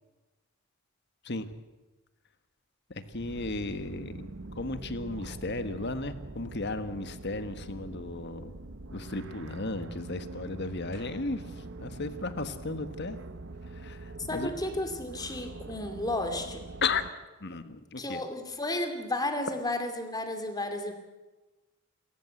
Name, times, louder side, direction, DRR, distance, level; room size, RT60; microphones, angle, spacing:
sound 1, 3.0-17.1, right 2 dB, 60° right, 0.9 m, -44 dB
voice 1, 3.1-8.5 8.9-13.2 13.7-14.5 15.7-15.8 16.8-17.0 17.4-18.2, left 3 dB, 55° left, 11 dB, 1.5 m, -35 dB
voice 2, 14.3-16.6 18.0-20.9, left 1 dB, 20° left, 6 dB, 2.5 m, -33 dB
28.0 x 14.5 x 7.9 m, 1.1 s
head